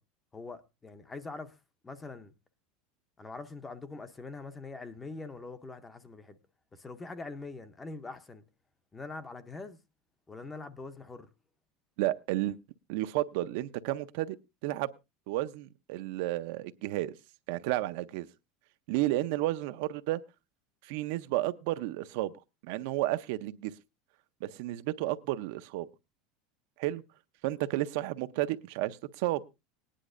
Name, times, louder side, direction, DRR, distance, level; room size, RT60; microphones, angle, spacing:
voice 1, 0.3-1.6 1.8-2.3 3.2-6.4 6.7-8.4 8.9-9.8 10.3-11.3, left 3 dB, 10° left, 0.6 m, -43 dB
voice 2, 12.0-12.6 12.9-14.4 14.6-14.9 15.3-17.1 17.5-18.3 18.9-20.2 20.8-22.3 22.6-23.7 24.4-25.9 26.8-27.0 27.4-29.4, right 16 dB, 60° right, 0.5 m, -32 dB
20.0 x 10.0 x 2.4 m
supercardioid pair, 175°, 0 cm